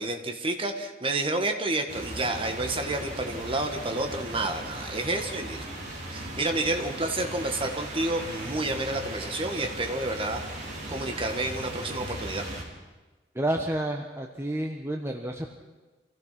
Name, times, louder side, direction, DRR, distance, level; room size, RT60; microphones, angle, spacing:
voice 1, 0.0-5.6 6.1-10.4 10.9-12.5, right 2 dB, 30° right, 5 dB, 1.9 m, -30 dB
sound 1, 1.9-12.6, right 1 dB, 45° right, 5.0 m, -38 dB
voice 2, 13.3-15.5, right 1 dB, 15° right, 2 dB, 1.2 m, -30 dB
26.5 x 16.0 x 6.0 m, 1.3 s
head